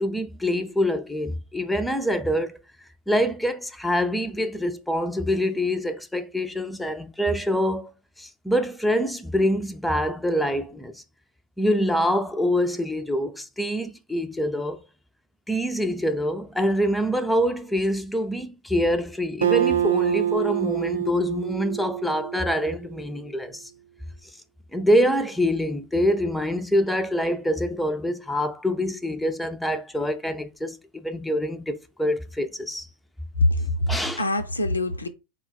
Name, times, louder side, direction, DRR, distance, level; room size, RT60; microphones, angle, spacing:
voice 1, 0.0-2.5 3.1-7.9 8.2-11.0 11.6-14.8 15.5-23.7 24.7-32.9 33.9-34.2, equal, 5° left, 0.4 m, -25 dB
Acoustic guitar, 19.4-23.0, right 10 dB, 65° right, 0.5 m, -26 dB
voice 2, 33.4-35.1, left 1 dB, 80° left, 0.5 m, -24 dB
4.1 x 2.2 x 4.0 m
figure-of-eight pair, 90°, 0 cm